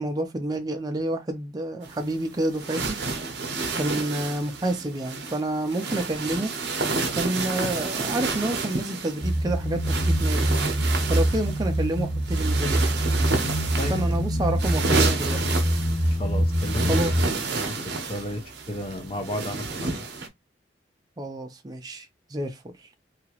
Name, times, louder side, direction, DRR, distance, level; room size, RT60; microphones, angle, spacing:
voice 1, 0.0-3.0 3.7-6.5 7.1-10.5 11.1-12.9 13.9-15.6 16.9-17.4 21.2-22.9, right 1 dB, 20° right, 0.4 m, -29 dB
sound 1, 1.8-20.3, right 4 dB, 60° right, 0.7 m, -30 dB
sound 2, 9.2-17.2, equal, 15° left, 1.0 m, -24 dB
voice 2, 13.8-14.2 16.2-18.4 18.7-20.0, left 1 dB, 30° left, 0.6 m, -33 dB
2.8 x 2.4 x 2.9 m
head